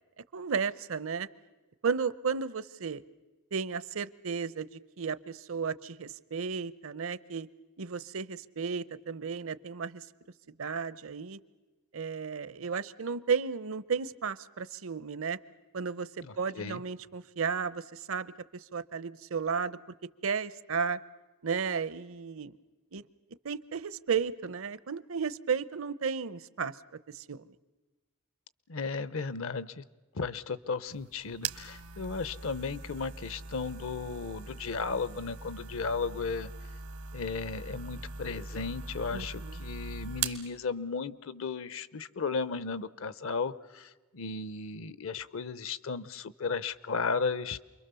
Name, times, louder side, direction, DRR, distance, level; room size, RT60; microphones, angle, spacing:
voice 1, 0.3-1.3 1.8-3.0 3.5-7.5 7.8-10.1 10.6-11.4 11.9-15.4 15.7-21.0 21.4-22.5 22.9-23.0 23.4-26.8 27.1-27.4 39.1-39.6, right 6 dB, 65° right, 18 dB, 0.7 m, -34 dB
voice 2, 16.2-16.8 28.7-29.8 30.1-36.5 37.1-47.6, left 4 dB, 65° left, 18 dB, 0.7 m, -35 dB
sound 1, 30.9-40.5, right 5 dB, 85° right, 1.5 m, -41 dB
28.5 x 22.5 x 6.9 m, 1.2 s
head